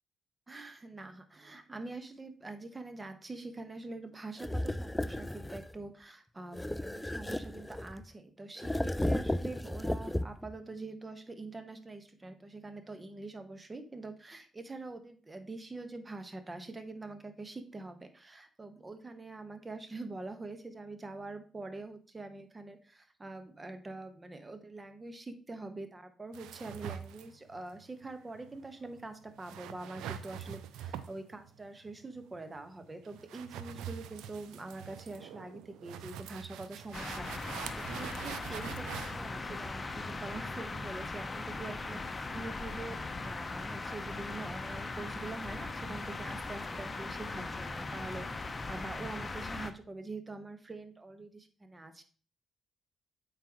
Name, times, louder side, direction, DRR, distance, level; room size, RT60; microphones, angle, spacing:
voice 1, 0.5-52.0, right 2 dB, 25° right, 8 dB, 1.2 m, -45 dB
sound 1, 4.4-5.7 6.5-8.1 8.6-10.6, left 1 dB, 10° left, 0.4 m, -34 dB
sound 2, 26.3-40.8, right 10 dB, 70° right, 0.4 m, -45 dB
sound 3, 36.9-49.7, left 3 dB, 30° left, 0.8 m, -39 dB
8.2 x 5.1 x 3.0 m, 0.40 s
figure-of-eight pair, 40°, 0 cm